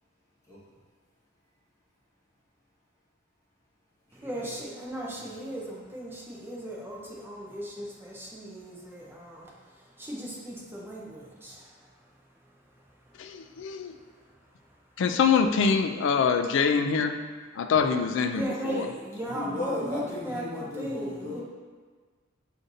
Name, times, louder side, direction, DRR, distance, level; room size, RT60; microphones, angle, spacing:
voice 1, 0.5-0.8 4.1-4.6 5.0-5.6 19.2-21.4, left 1 dB, 15° left, -8 dB, 1.1 m, -37 dB
voice 2, 4.1-11.9 13.4-13.6 13.9-14.2 18.3-20.4 20.8-21.4, equal, 10° right, -4 dB, 0.6 m, -37 dB
voice 3, 13.2-14.0 15.0-17.2 17.5-18.9, left 5 dB, 65° left, 7 dB, 0.3 m, -24 dB
6.3 x 2.6 x 2.6 m, 1.5 s
head